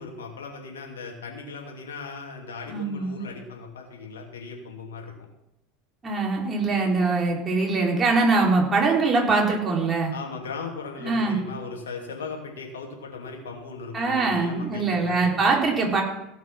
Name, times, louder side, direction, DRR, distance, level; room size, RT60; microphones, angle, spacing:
voice 1, 0.0-5.1 10.1-15.6, left 4 dB, 80° left, 1 dB, 2.7 m, -38 dB
voice 2, 2.7-3.2 6.0-10.1 11.0-11.4 13.9-16.0, right 3 dB, 25° right, -2 dB, 4.2 m, -23 dB
17.0 x 6.1 x 6.0 m, 0.86 s
hypercardioid pair, 80°, 0 cm